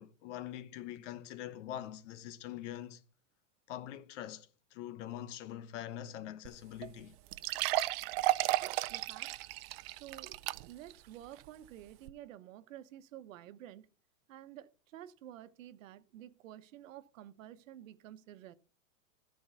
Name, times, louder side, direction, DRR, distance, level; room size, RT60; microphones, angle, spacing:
voice 1, 0.0-3.0 3.7-7.2, left 11 dB, 65° left, 1.0 m, -44 dB
sound 1, 6.4-6.5 6.8-6.9 7.3-10.9 11.4-11.5 12.1-12.2, right 17 dB, 50° right, 0.6 m, -33 dB
voice 2, 8.6-9.3 9.9-10.4 10.6-13.9 14.3-18.5, right 12 dB, 70° right, 1.1 m, -51 dB
12.5 x 4.7 x 5.7 m
supercardioid pair, 140°, 40 cm